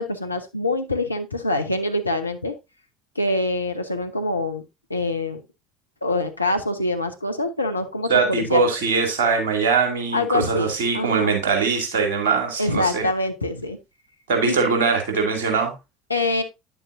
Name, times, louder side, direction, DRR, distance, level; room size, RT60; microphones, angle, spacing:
voice 1, 0.0-2.5 3.2-4.6 4.9-5.4 6.0-8.6 10.1-11.3 12.6-13.8 14.4-14.6 16.1-16.4, left 2 dB, 85° left, 0.8 m, -25 dB
voice 2, 8.1-13.0 14.3-15.7, right 5 dB, 65° right, 2.5 m, -21 dB
10.0 x 7.1 x 2.6 m
figure-of-eight pair, 65°, 0 cm